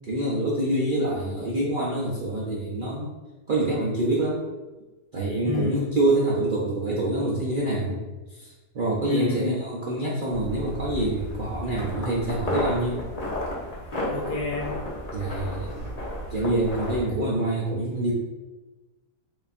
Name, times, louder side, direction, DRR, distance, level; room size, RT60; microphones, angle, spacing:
voice 1, 0.1-3.1 3.5-4.4 5.1-8.0 8.3-13.0 15.1-15.9 16.3-18.1, right 1 dB, 65° right, -5 dB, 0.5 m, -26 dB
voice 2, 5.4-6.0 9.0-9.6 14.1-15.1 17.0-17.1, left 3 dB, 85° left, -3 dB, 1.4 m, -30 dB
sound 1, 10.3-17.0, left 1 dB, 35° left, 0.7 m, -33 dB
4.8 x 2.6 x 2.5 m, 1.2 s
omnidirectional pair, 1.6 m